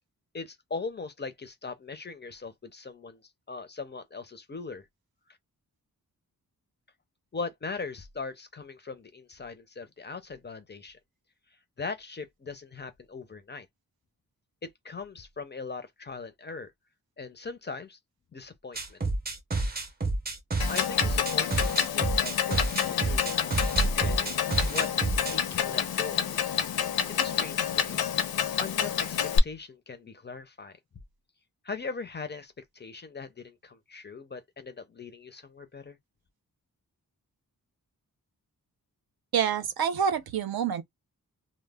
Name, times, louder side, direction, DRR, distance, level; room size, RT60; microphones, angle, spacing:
voice 1, 0.3-3.2 3.5-4.8 7.3-11.0 11.8-13.7 14.6-16.7 17.2-18.0 18.3-19.0 20.7-23.6 23.9-24.3 24.7-24.9 25.3-26.3 27.1-28.1 28.6-30.8 31.6-36.0, left 4 dB, 30° left, 0.4 m, -40 dB
sound 1, 18.8-25.4, right 2 dB, 25° right, 0.6 m, -29 dB
Clock, 20.6-29.4, left 8 dB, 85° left, 0.5 m, -28 dB
voice 2, 39.3-40.8, right 8 dB, 80° right, 0.6 m, -27 dB
2.0 x 2.0 x 3.3 m
wide cardioid pair, 165°, 36 cm